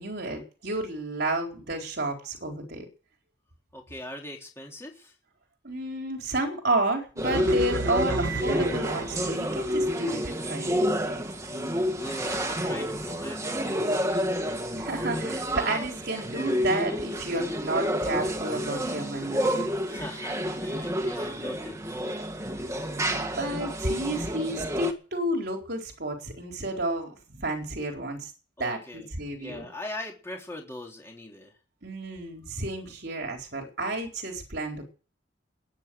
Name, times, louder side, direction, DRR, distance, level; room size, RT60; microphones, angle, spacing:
voice 1, 0.0-2.8 5.6-11.2 14.8-19.5 23.0-28.3 28.6-29.7 31.8-34.9, right 2 dB, 60° right, 1 dB, 4.3 m, -31 dB
voice 2, 3.7-5.1 11.6-14.0 19.8-22.2 28.6-29.1 29.4-31.5, left 1 dB, 15° left, 0 dB, 3.7 m, -41 dB
sound 1, 7.2-24.9, equal, 15° right, 1.9 m, -29 dB
sound 2, 7.3-9.7, right 4 dB, 75° right, 0.7 m, -34 dB
20.5 x 9.0 x 6.3 m, 0.37 s
head